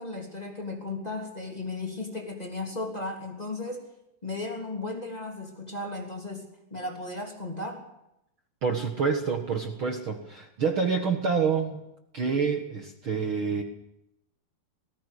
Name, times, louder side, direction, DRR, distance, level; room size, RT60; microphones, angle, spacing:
voice 1, 0.0-3.8 4.2-7.8, left 2 dB, 10° left, 0 dB, 2.4 m, -35 dB
voice 2, 8.6-11.8 12.1-13.6, right 5 dB, 80° right, 4 dB, 1.1 m, -27 dB
19.5 x 17.5 x 8.3 m, 0.86 s
omnidirectional pair, 5.1 m